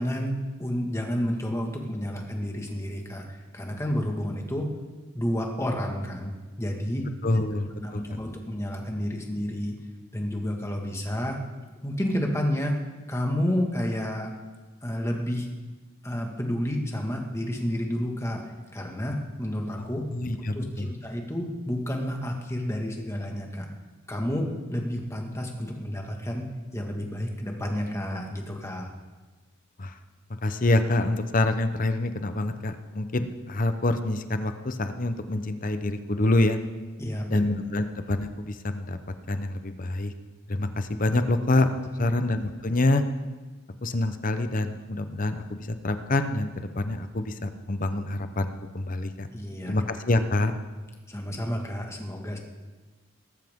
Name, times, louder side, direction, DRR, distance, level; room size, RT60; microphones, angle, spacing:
voice 1, 0.0-4.7 5.2-6.3 6.6-7.4 7.8-9.8 10.1-11.4 11.8-12.8 13.1-14.3 14.8-15.5 16.0-18.4 18.7-20.1 20.5-23.7 24.1-26.4 26.7-28.9 37.0-37.5 37.8-37.9 49.3-49.8 51.1-52.4, equal, 15° left, 1 dB, 1.7 m, -30 dB
voice 2, 7.2-8.0 19.8-19.9 20.1-20.9 29.8-29.9 30.3-36.6 37.3-39.0 39.3-40.1 40.5-43.0 43.8-49.3 49.6-50.5, left 2 dB, 40° left, 9 dB, 0.8 m, -26 dB
18.5 x 14.0 x 3.7 m, 1.3 s
head